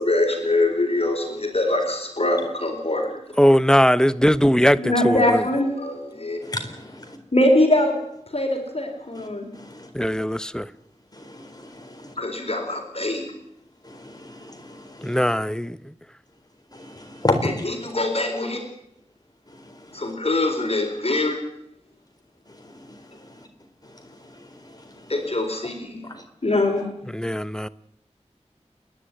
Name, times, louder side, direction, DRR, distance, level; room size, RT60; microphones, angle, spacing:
voice 1, 0.0-3.2 4.8-6.4 7.3-7.9 8.3-9.5 12.2-13.3 17.8-18.6 19.9-21.4 25.1-26.0 26.4-26.9, left 1 dB, 55° left, 4.5 m, -23 dB
voice 2, 3.4-5.4 9.9-10.7 15.0-15.8 27.1-27.7, equal, 5° left, 0.7 m, -20 dB
voice 3, 6.4-7.2 9.1-9.3 9.5-9.9 11.1-12.1 13.8-15.3 16.7-18.0 19.5-20.1 22.5-23.5 23.8-25.4 26.0-26.2, left 1 dB, 30° left, 4.1 m, -33 dB
28.0 x 11.5 x 9.8 m
wide cardioid pair, 50°, 12 cm